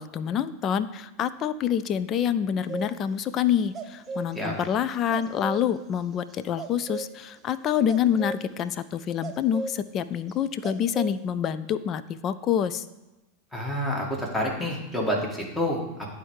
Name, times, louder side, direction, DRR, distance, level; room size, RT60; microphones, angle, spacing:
voice 1, 0.0-12.8, left 9 dB, 35° left, 14 dB, 0.4 m, -27 dB
sound 1, 2.7-3.0 3.7-5.6 6.6-7.1 7.9-8.6 9.0-9.8 10.3-10.4 10.6-11.1, right 4 dB, 25° right, 0.7 m, -34 dB
voice 2, 13.5-16.1, equal, 15° left, -1 dB, 1.8 m, -28 dB
8.8 x 3.4 x 4.7 m, 1.1 s
hypercardioid pair, 90°, 0 cm